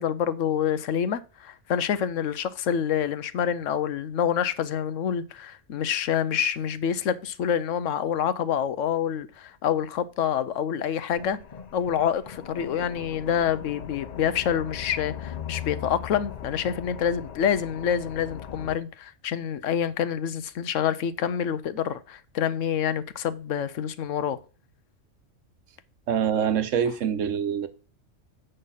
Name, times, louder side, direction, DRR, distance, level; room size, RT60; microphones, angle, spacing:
voice 1, 0.0-11.4 11.7-24.4, left 8 dB, 80° left, 1.0 m, -27 dB
sound 1, 11.1-18.8, left 9 dB, 50° left, 0.5 m, -39 dB
voice 2, 26.1-27.7, right 8 dB, 80° right, 1.2 m, -25 dB
7.9 x 5.5 x 5.6 m
omnidirectional pair, 1.3 m